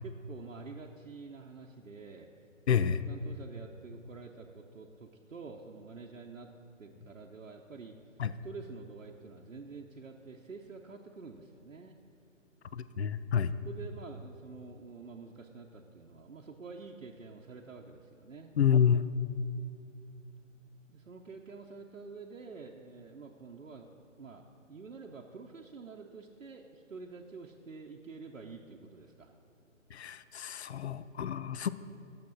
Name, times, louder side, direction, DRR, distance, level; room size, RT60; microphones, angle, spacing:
voice 1, 0.0-2.3 2.7-6.5 6.8-8.0 8.4-12.0 12.8-13.3 13.6-18.5 20.9-29.3, right 4 dB, 75° right, 0 dB, 0.9 m, -48 dB
voice 2, 2.7-3.0 8.2-8.3 12.7-13.5 18.6-19.0 29.9-31.7, left 8 dB, 55° left, 14 dB, 0.5 m, -28 dB
10.5 x 6.8 x 6.1 m, 2.7 s
figure-of-eight pair, 145°, 39 cm